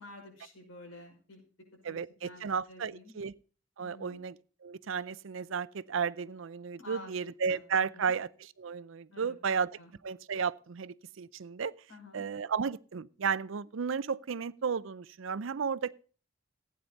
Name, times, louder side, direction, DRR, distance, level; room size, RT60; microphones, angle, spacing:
voice 1, 0.0-1.4 1.9-2.0 2.2-3.1 3.8-4.2 6.8-7.1 7.5-8.1 9.1-9.4 9.8-9.9 11.9-12.2, left 2 dB, 90° left, 5.5 m, -50 dB
voice 2, 1.8-3.3 3.8-9.7 10.0-11.7 12.1-15.9, right 6 dB, 70° right, 0.5 m, -33 dB
15.5 x 9.5 x 4.0 m
head